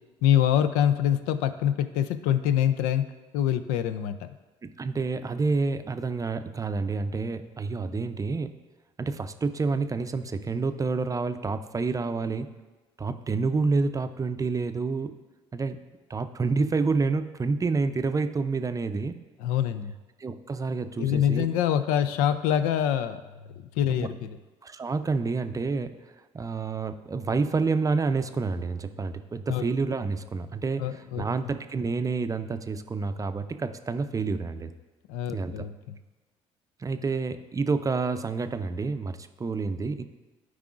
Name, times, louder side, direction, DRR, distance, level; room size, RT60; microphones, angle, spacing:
voice 1, 0.2-4.3 19.4-19.9 21.0-23.2 23.8-24.3 29.5-29.6 30.8-31.2 35.1-36.0, left 10 dB, 80° left, 12 dB, 0.4 m, -25 dB
voice 2, 4.8-8.5 9.0-12.5 13.0-15.1 15.5-15.8 16.1-19.2 20.2-21.5 23.9-24.1 24.6-25.9 26.3-34.7 35.3-35.5 36.8-40.0, right 4 dB, 25° right, 9 dB, 0.5 m, -28 dB
12.0 x 4.8 x 2.5 m, 1.2 s
hypercardioid pair, 65°, 13 cm